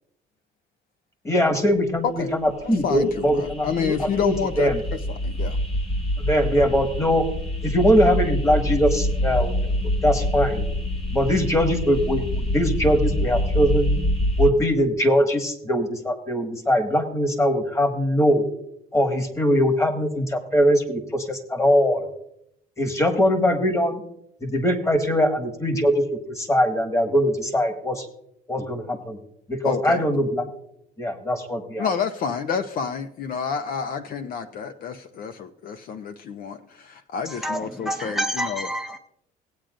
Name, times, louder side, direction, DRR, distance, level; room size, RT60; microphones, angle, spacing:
voice 1, 1.2-2.0 2.3-4.8 6.2-7.3 7.6-9.5 10.0-10.6 11.1-13.9 14.4-18.5 18.9-22.1 22.8-24.0 24.4-28.1 28.5-29.2 29.5-30.5 31.0-31.9, equal, 15° left, 6 dB, 1.7 m, -21 dB
voice 2, 2.0-2.4 2.6-4.8 5.1-5.6 29.6-30.0 31.8-38.7, left 6 dB, 60° left, 10 dB, 0.7 m, -29 dB
sound 1, 2.5-14.5, left 1 dB, 35° left, 2.0 m, -26 dB
voice 3, 37.3-39.0, equal, ahead, 6 dB, 0.6 m, -28 dB
18.5 x 8.8 x 2.5 m, 0.74 s
cardioid pair, 110°, 17 cm